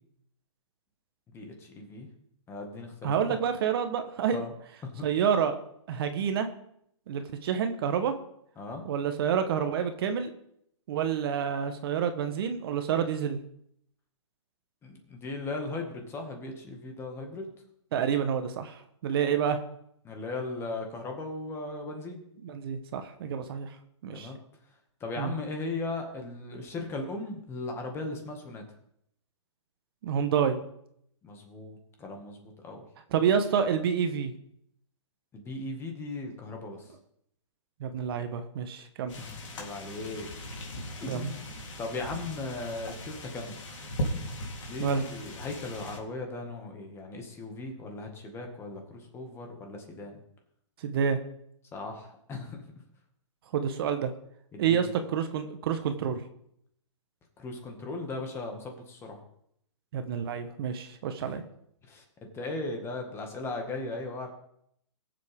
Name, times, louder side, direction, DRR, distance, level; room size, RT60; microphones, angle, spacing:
voice 1, 1.3-2.1 2.5-3.2 4.3-4.5 4.8-5.0 8.6-8.8 14.8-17.5 20.0-22.2 24.1-24.4 25.0-28.6 31.2-32.9 35.3-36.9 39.2-40.3 41.0-41.4 41.8-43.5 44.6-50.2 51.7-52.6 54.5-54.9 57.4-59.2 61.2-61.3 61.9-62.0 62.3-64.3, left 2 dB, 15° left, 3 dB, 1.9 m, -37 dB
voice 2, 3.0-4.4 5.0-5.6 5.9-6.5 7.1-8.1 8.8-10.3 10.9-13.4 17.9-19.6 22.4-23.7 24.0-24.3 25.2-25.3 30.0-30.6 33.1-34.3 37.8-39.1 41.1-41.3 44.8-45.0 50.8-51.2 53.5-54.1 54.6-56.2 59.9-61.4, right 7 dB, 50° right, 8 dB, 1.2 m, -28 dB
sound 1, 39.1-46.0, equal, 75° left, 3.4 m, -38 dB
20.0 x 7.5 x 3.6 m, 0.72 s
hypercardioid pair, 150°, 16 cm